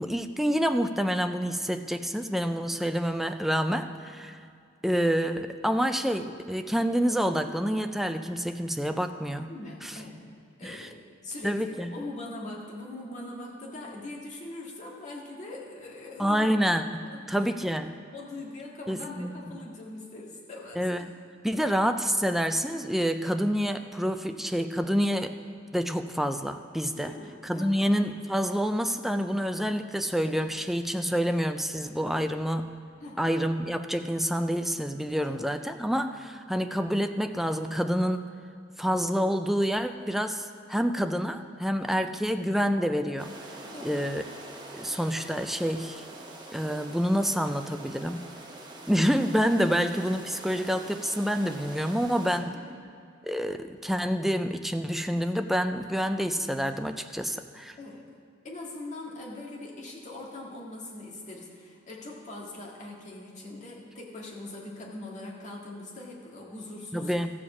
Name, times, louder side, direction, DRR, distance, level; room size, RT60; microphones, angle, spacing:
voice 1, 0.0-4.4 4.8-9.5 9.8-9.9 10.6-10.9 11.4-11.9 16.2-18.0 18.9-19.3 20.8-21.2 21.4-25.4 25.7-27.1 27.4-32.8 33.2-38.3 38.8-43.3 43.8-44.2 44.7-46.0 46.5-48.3 48.9-52.6 53.2-57.8 66.9-67.3, equal, ahead, 7 dB, 0.3 m, -28 dB
voice 2, 9.5-10.2 10.6-16.5 17.0-17.2 18.1-20.8 26.9-27.9 30.9-31.1 33.0-33.3 35.2-35.4 42.0-42.1 43.6-44.1 52.5-52.8 57.8-58.1 58.4-67.1, left 2 dB, 40° left, -3 dB, 1.9 m, -42 dB
sound 1, 43.2-52.4, right 2 dB, 20° right, 1.0 m, -45 dB
14.0 x 5.0 x 7.1 m, 2.3 s
head